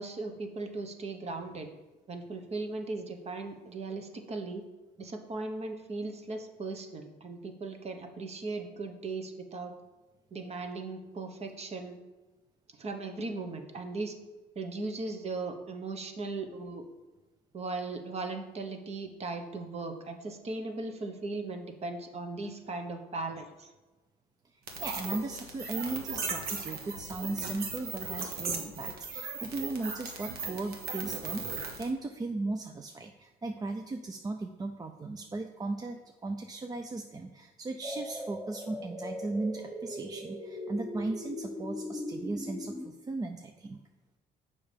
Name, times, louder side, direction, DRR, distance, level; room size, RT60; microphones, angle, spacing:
voice 1, 0.0-1.7 2.1-4.6 5.0-9.7 10.3-12.0 12.8-14.2 14.5-16.8 17.5-23.7, right 3 dB, 40° right, 6 dB, 1.0 m, -38 dB
sound 1, 24.7-31.9, right 4 dB, 65° right, 1.3 m, -37 dB
voice 2, 24.8-43.8, right 2 dB, 20° right, 5 dB, 0.5 m, -37 dB
sound 2, 37.8-42.9, left 1 dB, 5° right, 1.0 m, -39 dB
6.9 x 5.5 x 5.1 m, 1.1 s
cardioid pair, 110°, 17 cm